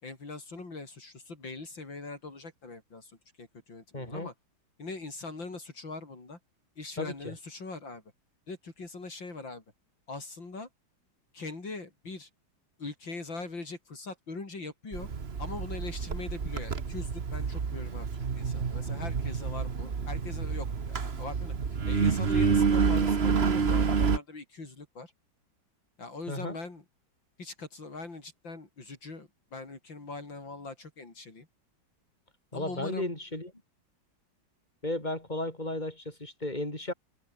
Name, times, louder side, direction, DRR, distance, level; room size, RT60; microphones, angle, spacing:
voice 1, 0.0-4.3 4.8-6.4 6.8-8.0 8.5-9.6 10.1-10.7 11.3-12.3 12.8-15.1 15.4-18.1 18.4-25.1 26.0-26.8 27.4-31.5 32.5-33.1, left 3 dB, 70° left, 5.4 m, -41 dB
voice 2, 3.9-4.3 7.0-7.3 26.3-26.6 32.5-33.5 34.8-36.9, left 1 dB, 20° left, 7.3 m, -34 dB
Engine, 14.9-24.2, right 5 dB, 35° right, 1.5 m, -28 dB
omnidirectional pair, 2.1 m